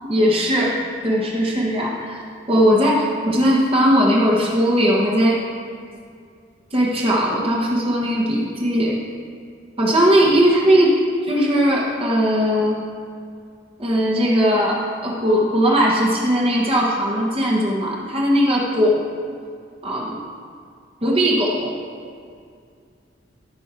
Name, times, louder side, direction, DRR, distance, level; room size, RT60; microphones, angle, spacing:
voice 1, 0.1-2.2 2.5-5.4 6.7-9.0 9.8-10.9 11.3-12.8 13.8-19.0 19.8-20.2 21.0-21.8, equal, 30° right, -4 dB, 1.2 m, -18 dB
14.0 x 5.5 x 4.4 m, 2.3 s
head